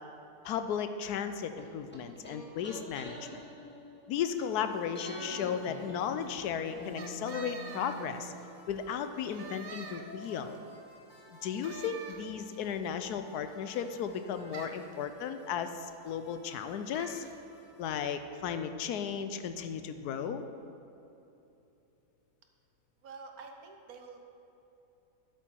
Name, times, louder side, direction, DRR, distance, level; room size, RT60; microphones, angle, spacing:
voice 1, 0.4-3.4 4.1-8.3 8.7-10.6 11.4-17.2 17.8-20.4, left 7 dB, 90° left, 9 dB, 1.2 m, -35 dB
sound 1, 1.6-4.5 4.9-8.8 9.0-9.1, equal, 5° left, 1.3 m, -46 dB
sound 2, 4.2-17.9, equal, 50° left, 1.7 m, -55 dB
sound 3, 7.0-8.6 9.1-10.6 11.6-12.7 14.5-14.9 16.9-17.4, right 5 dB, 50° right, 0.7 m, -46 dB
voice 2, 23.0-24.2, right 4 dB, 70° right, 3 dB, 1.4 m, -48 dB
11.0 x 8.1 x 4.6 m, 3.0 s
omnidirectional pair, 1.7 m